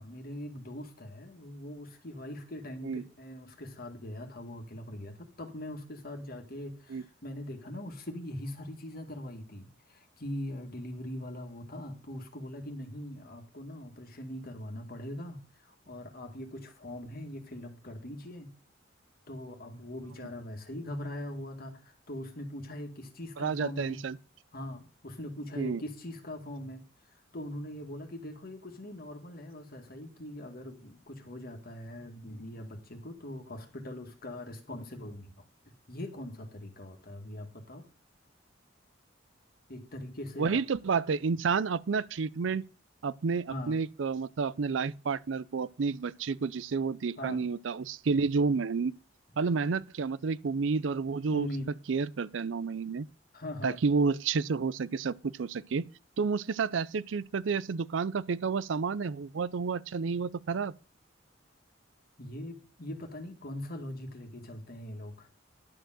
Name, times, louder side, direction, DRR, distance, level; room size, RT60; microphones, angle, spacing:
voice 1, 0.0-18.5 19.3-24.0 24.5-26.8 27.3-35.4 35.9-37.9 39.7-40.6 43.5-43.8 47.2-47.5 51.3-51.7 53.3-53.8 62.2-65.3, left 1 dB, 50° left, 2.0 m, -41 dB
voice 2, 23.4-24.2 25.6-25.8 40.4-42.6 43.0-48.9 49.4-51.5 51.9-53.1 53.6-55.9 56.2-60.7, right 5 dB, 75° right, 0.5 m, -30 dB
11.5 x 4.6 x 7.5 m
head